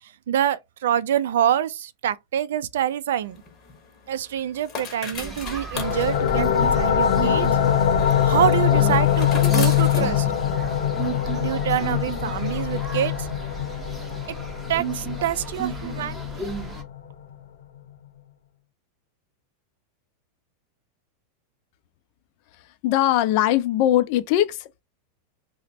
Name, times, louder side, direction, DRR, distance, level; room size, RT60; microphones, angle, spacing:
voice 1, 0.0-3.4 4.1-7.5 8.2-10.3 11.4-13.3 14.7-16.5, right 10 dB, 85° right, 0.3 m, -26 dB
sound 1, 3.2-10.9, left 6 dB, 25° left, 0.8 m, -39 dB
sound 2, 5.1-16.8, right 4 dB, 5° right, 0.5 m, -34 dB
sound 3, 5.7-17.1, left 9 dB, 80° left, 0.7 m, -23 dB
voice 2, 22.8-24.8, left 13 dB, 45° left, 0.4 m, -21 dB
3.0 x 2.0 x 4.1 m
supercardioid pair, 170°, 0 cm